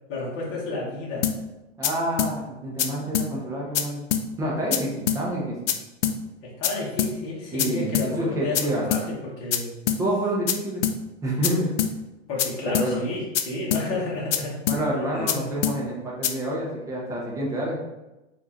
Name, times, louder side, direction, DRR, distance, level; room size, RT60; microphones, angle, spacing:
voice 1, 0.1-1.3 6.4-9.7 12.3-14.6 14.9-15.6, left 2 dB, 35° left, -5 dB, 1.0 m, -31 dB
sound 1, 1.2-1.4 1.8-1.9 2.2-2.3 2.8-2.9 3.1-3.3 3.7-3.8 4.1-4.2 4.7-4.8 5.1-5.2 5.7-5.8 6.0-6.2 6.6-6.7 7.0-7.1 7.6-7.7 7.9-8.1 8.5-8.6 8.9-9.0 9.5-9.6 9.9-10.0 10.5-10.6 10.8-11.0 11.4-11.5 11.8-11.9 12.4-12.5 12.7-12.9 13.3-13.4 13.7-13.8 14.3-14.4 14.7-14.8 15.3-15.4 15.6-15.8 16.2-16.3, left 9 dB, 65° left, 0.5 m, -23 dB
voice 2, 1.8-4.0 4.4-5.7 7.5-8.8 10.0-10.8 11.2-11.7 12.7-13.0 14.7-17.8, right 1 dB, 10° right, -4 dB, 0.5 m, -28 dB
3.7 x 2.5 x 2.8 m, 1.0 s
hypercardioid pair, 125°, 38 cm